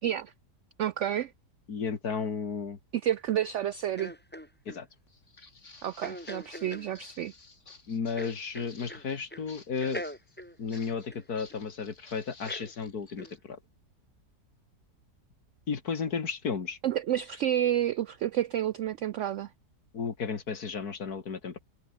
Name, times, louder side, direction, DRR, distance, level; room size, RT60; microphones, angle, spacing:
voice 1, 0.0-0.3 0.8-1.3 2.9-4.1 5.8-7.3 16.8-19.5, right 11 dB, 75° right, 0.6 m, -30 dB
voice 2, 1.7-2.8 4.7-4.9 7.9-10.0 10.6-13.6 15.7-16.8 19.9-21.6, left 5 dB, 65° left, 2.6 m, -33 dB
sound 1, 4.0-4.8 6.0-6.9 8.2-9.0 9.3-9.5 9.8-11.6 12.5-12.7 13.2-13.4, equal, 5° left, 5.3 m, -42 dB
Walk footsteps, 5.1-13.4, left 3 dB, 45° left, 3.2 m, -54 dB
omnidirectional pair, 1.8 m